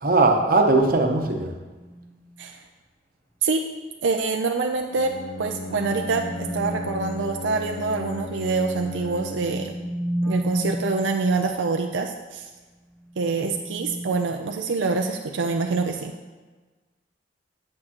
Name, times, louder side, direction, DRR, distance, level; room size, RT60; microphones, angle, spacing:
voice 1, 0.0-1.5, right 3 dB, 50° right, 2 dB, 0.9 m, -19 dB
sound 1, 1.8-2.3 5.4-7.2 9.4-11.0 13.0-15.4, right 1 dB, 10° left, 0.4 m, -33 dB
voice 2, 4.0-5.1 5.4-9.7 10.2-12.5 13.2-16.1, right 4 dB, 85° right, 3 dB, 0.5 m, -25 dB
Bowed string instrument, 4.9-10.0, left 2 dB, 90° left, 0.8 m, -36 dB
8.6 x 7.4 x 3.0 m, 1.3 s
head